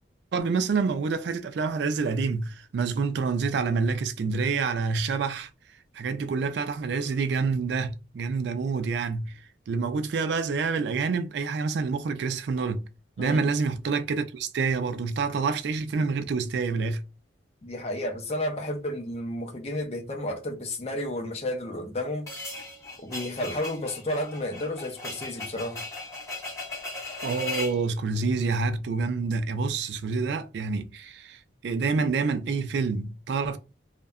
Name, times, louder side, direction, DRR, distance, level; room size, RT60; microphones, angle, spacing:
voice 1, 0.3-5.5 5.9-9.3 9.7-12.9 13.2-17.0 27.2-33.6, right 4 dB, 65° right, 0.3 m, -27 dB
voice 2, 17.6-22.3 23.0-25.8, left 1 dB, 35° left, 0.5 m, -32 dB
sound 1, 22.3-27.8, left 2 dB, 20° left, 1.2 m, -37 dB
2.6 x 2.1 x 2.3 m
head